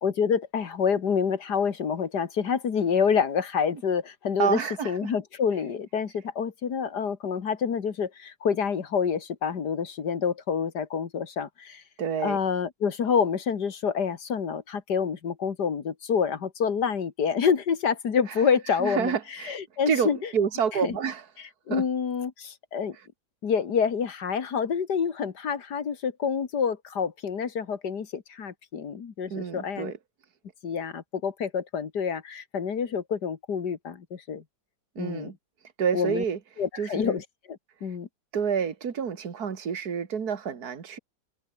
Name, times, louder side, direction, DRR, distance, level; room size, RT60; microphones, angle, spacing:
voice 1, 0.0-4.6 4.9-11.8 12.2-20.3 20.8-21.0 21.7-23.0 23.4-29.9 30.6-34.4 35.0-35.3 35.9-36.2 36.6-38.1, left 6 dB, 70° left, 2.3 m, -27 dB
voice 2, 4.4-5.1 12.0-12.4 18.3-18.4 18.7-19.6 19.9-21.2 21.7-21.8 29.3-30.0 35.0-35.4 35.8-36.4 36.8-37.2 38.3-41.0, right 7 dB, 60° right, 2.4 m, -28 dB
omnidirectional pair, 1.9 m